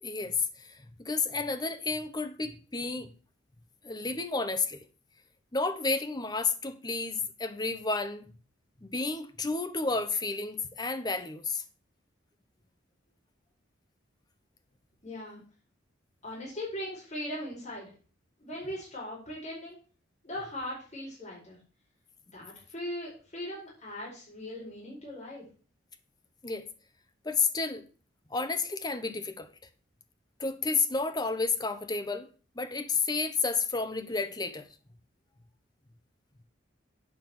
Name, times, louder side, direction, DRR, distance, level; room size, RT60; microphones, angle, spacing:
voice 1, 0.0-3.1 3.8-4.8 5.5-8.3 8.8-11.6 26.4-26.7 27.2-27.8 28.3-29.5 30.4-32.3 32.6-34.7, left 4 dB, 20° left, 0.8 m, -31 dB
voice 2, 15.0-15.4 16.2-17.9 18.4-19.8 20.2-21.6 22.3-25.4, left 1 dB, 40° left, 5.0 m, -39 dB
8.8 x 5.4 x 6.0 m
head